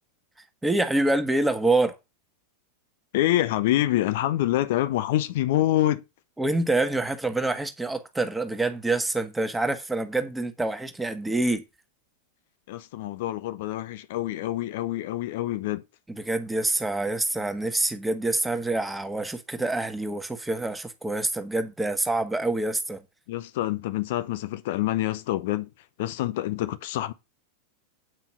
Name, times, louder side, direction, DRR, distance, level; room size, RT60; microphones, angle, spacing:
voice 1, 0.6-2.0 6.4-11.6 16.1-23.0, right 2 dB, 5° right, 1.5 m, -26 dB
voice 2, 3.1-6.0 12.7-15.8 23.3-25.7 26.0-27.1, left 14 dB, 50° left, 0.7 m, -26 dB
9.2 x 5.6 x 5.8 m
figure-of-eight pair, 90°, 0 cm